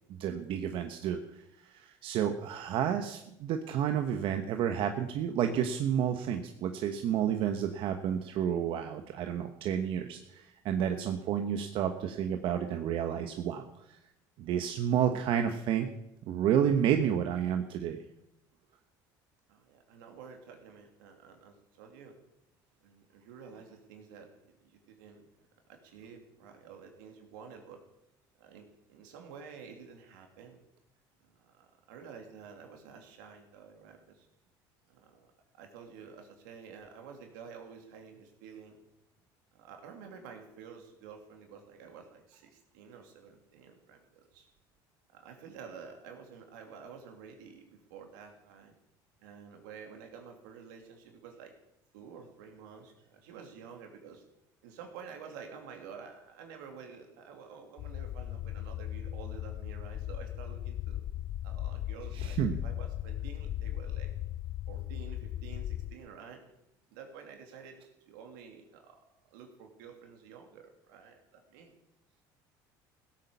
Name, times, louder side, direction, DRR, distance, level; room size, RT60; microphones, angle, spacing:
voice 1, 0.1-1.2 1.7-13.6 14.4-15.9 16.3-18.0 62.1-62.5, right 9 dB, 65° right, 6 dB, 1.2 m, -30 dB
voice 2, 19.5-22.1 22.8-25.3 25.7-27.8 28.4-30.6 31.2-34.3 34.9-38.8 39.5-44.5 45.1-48.7 49.2-51.5 51.9-54.2 54.6-61.0 61.4-64.1 64.7-66.4 66.9-67.8 68.1-69.0 69.3-71.7, right 6 dB, 90° right, 3 dB, 2.9 m, -50 dB
sound 1, 57.8-65.9, left 12 dB, 55° left, 0.6 m, -37 dB
16.0 x 8.7 x 6.9 m, 0.84 s
supercardioid pair, 90°, 10 cm